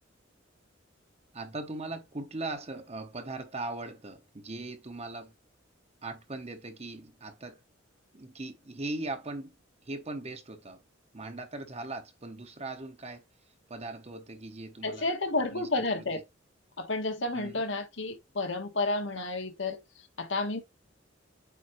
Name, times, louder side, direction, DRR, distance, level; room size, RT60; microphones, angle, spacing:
voice 1, 1.3-5.3 6.0-7.6 8.1-9.6 9.8-10.8 11.1-13.2 13.7-15.1 15.5-15.7 15.9-16.0 17.3-17.6, right 2 dB, 30° right, 1.0 m, -39 dB
voice 2, 14.8-16.2 16.8-20.6, left 2 dB, 65° left, 1.3 m, -31 dB
8.3 x 3.6 x 3.1 m
head